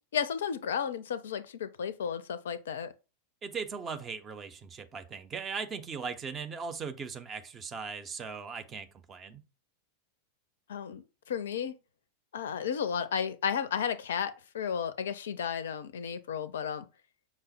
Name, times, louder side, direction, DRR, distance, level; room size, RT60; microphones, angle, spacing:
voice 1, 0.1-2.9 10.7-11.8 12.3-16.9, left 7 dB, 60° left, 0.4 m, -33 dB
voice 2, 3.4-9.4, right 5 dB, 25° right, 0.5 m, -39 dB
5.1 x 2.0 x 4.0 m
figure-of-eight pair, 90°, 0 cm